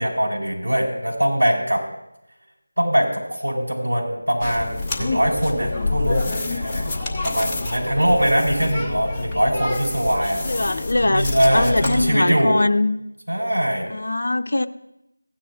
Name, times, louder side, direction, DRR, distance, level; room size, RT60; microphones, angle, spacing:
voice 1, 0.0-1.8 2.8-7.0 7.2-10.4 11.0-12.6 13.3-13.9, equal, 90° right, -3 dB, 4.3 m, -22 dB
sound 1, 4.4-12.1, left 3 dB, 10° left, 0.9 m, -27 dB
voice 2, 10.4-11.2 11.5-12.9 13.9-14.7, left 2 dB, 60° left, 9 dB, 0.6 m, -21 dB
16.5 x 9.9 x 2.4 m, 0.86 s
figure-of-eight pair, 170°, 0 cm